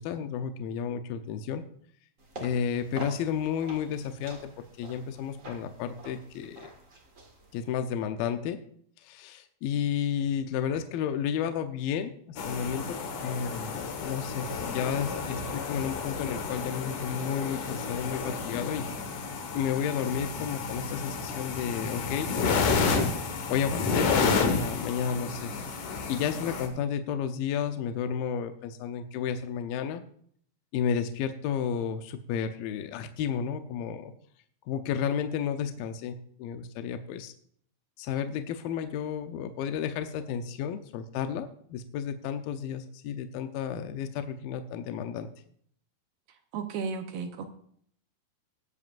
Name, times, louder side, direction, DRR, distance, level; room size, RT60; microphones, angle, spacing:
voice 1, 0.0-1.6 2.4-4.4 4.8-6.7 7.5-8.6 9.0-13.0 13.2-19.2 19.5-23.0 23.5-25.5 26.1-30.0 30.7-34.1 34.7-37.3 38.0-45.3, left 8 dB, 75° left, 8 dB, 2.3 m, -32 dB
sound 1, 2.2-7.8, right 2 dB, 40° right, 1.2 m, -47 dB
sound 2, 12.4-26.7, left 4 dB, 60° left, 2.4 m, -31 dB
voice 2, 46.5-47.5, right 5 dB, 75° right, 6 dB, 2.5 m, -34 dB
20.0 x 8.2 x 2.5 m, 0.62 s
omnidirectional pair, 4.7 m